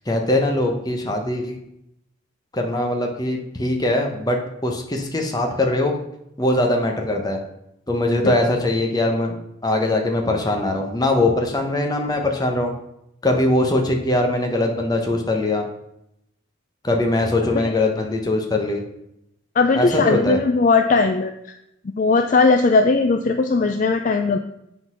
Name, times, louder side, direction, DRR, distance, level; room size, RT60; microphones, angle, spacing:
voice 1, 0.1-1.6 2.5-6.0 6.4-7.4 7.9-9.4 9.6-12.7 13.2-15.7 16.8-18.8 19.7-20.4, left 1 dB, 20° left, 2 dB, 0.9 m, -21 dB
voice 2, 19.6-21.3 22.0-24.4, left 3 dB, 40° left, 6 dB, 0.4 m, -18 dB
7.8 x 4.0 x 6.1 m, 0.82 s
head